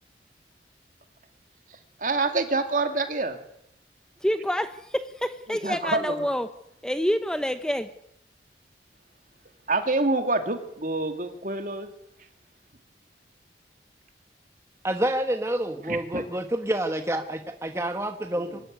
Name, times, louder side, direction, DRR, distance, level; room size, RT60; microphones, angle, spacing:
voice 1, 2.0-3.4 5.5-6.2 9.7-11.9 15.9-16.2 18.4-18.6, right 3 dB, 45° right, 7 dB, 2.4 m, -27 dB
voice 2, 4.2-6.5 6.8-7.9, equal, 5° left, 10 dB, 0.8 m, -27 dB
voice 3, 14.8-18.6, right 1 dB, 15° right, 6 dB, 1.1 m, -28 dB
24.5 x 13.0 x 9.5 m, 0.75 s
head